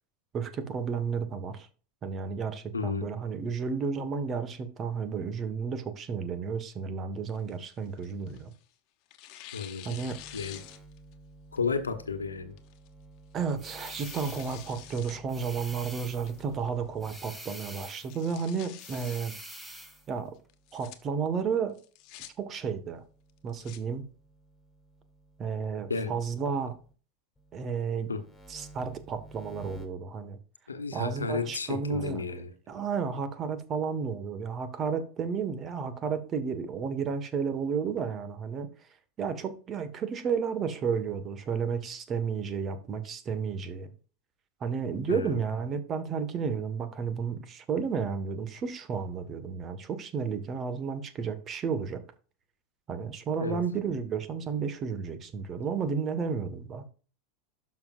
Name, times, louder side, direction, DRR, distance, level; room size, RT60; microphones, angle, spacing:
voice 1, 0.3-1.7 2.0-8.5 9.8-10.2 13.3-19.3 20.1-20.3 20.7-21.8 22.4-23.0 23.4-24.1 25.4-26.8 27.5-28.1 28.5-30.4 30.9-32.4 32.7-38.7 39.2-43.9 44.6-52.0 52.9-56.9, right 6 dB, 35° right, 1.5 m, -32 dB
voice 2, 2.7-3.1 9.5-10.0 10.3-10.6 11.5-12.5 25.9-26.1 28.1-28.2 30.7-32.5 45.1-45.4 53.3-53.6, left 5 dB, 90° left, 1.1 m, -32 dB
Tearing, 7.3-8.6 9.1-11.1 11.6-11.7 12.6-12.9 13.4-15.2 15.6-15.7 16.3-16.7 17.0-17.1 17.4-17.5 17.9-19.2 20.5-21.0 21.8-22.3 23.3-23.8, left 13 dB, 55° left, 1.2 m, -48 dB
sound 1, 10.1-17.5 19.5-21.7 22.2-26.9 27.4-29.9, right 2 dB, 5° left, 4.3 m, -54 dB
sound 2, 13.6-14.7 15.3-16.4 17.0-18.2 18.8-20.0, right 1 dB, 10° right, 2.3 m, -46 dB
12.0 x 6.0 x 2.5 m
hypercardioid pair, 85°, 0 cm